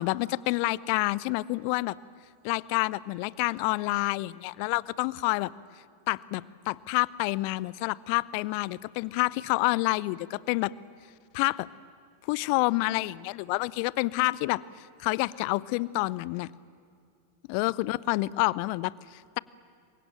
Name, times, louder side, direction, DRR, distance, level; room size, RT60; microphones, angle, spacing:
voice 1, 0.0-2.0 2.4-5.5 6.1-10.7 11.3-11.7 12.3-14.6 15.0-16.5 17.5-19.4, left 21 dB, 45° left, 22 dB, 0.6 m, -28 dB
28.0 x 23.5 x 9.0 m, 2.4 s
figure-of-eight pair, 90°, 0 cm